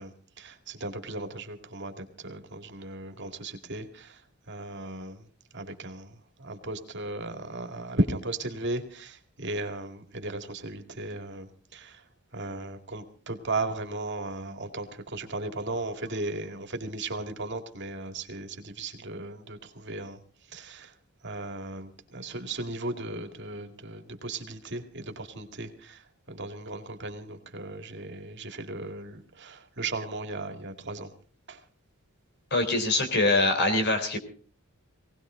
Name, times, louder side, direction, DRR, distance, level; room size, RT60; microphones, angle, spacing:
voice 1, 0.0-4.2 4.5-5.3 5.5-12.0 12.3-20.2 20.5-20.9 21.2-31.1 31.5-31.6, right 2 dB, 50° right, 5 dB, 2.3 m, -36 dB
voice 2, 32.5-34.2, left 2 dB, 50° left, 7 dB, 3.7 m, -24 dB
19.5 x 18.5 x 3.8 m, 0.41 s
head